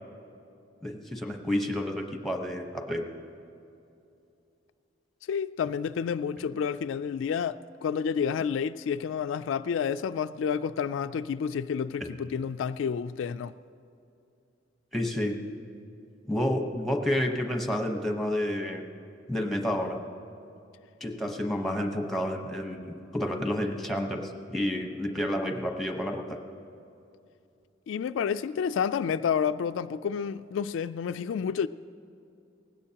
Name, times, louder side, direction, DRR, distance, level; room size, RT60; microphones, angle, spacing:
voice 1, 0.8-3.0 12.0-12.1 14.9-15.4 16.3-18.8 19.3-20.0 21.0-26.4, left 1 dB, ahead, 1.0 m, -30 dB
voice 2, 5.3-13.5 27.9-31.7, left 7 dB, 80° left, 0.3 m, -30 dB
19.0 x 16.5 x 2.9 m
head